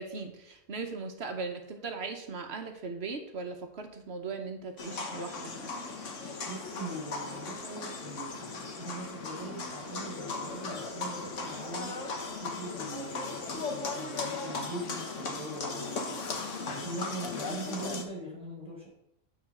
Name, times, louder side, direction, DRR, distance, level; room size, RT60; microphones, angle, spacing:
voice 1, 0.0-5.7, right 4 dB, 60° right, 5 dB, 1.1 m, -38 dB
sound 1, 4.8-18.1, left 3 dB, 80° left, 1.5 m, -37 dB
sound 2, 6.4-13.5, left 1 dB, 50° left, 1.6 m, -52 dB
voice 2, 6.5-12.0 12.4-16.3 16.7-18.9, right 1 dB, 5° right, -2 dB, 3.7 m, -42 dB
9.4 x 3.9 x 6.6 m, 0.80 s
omnidirectional pair, 1.3 m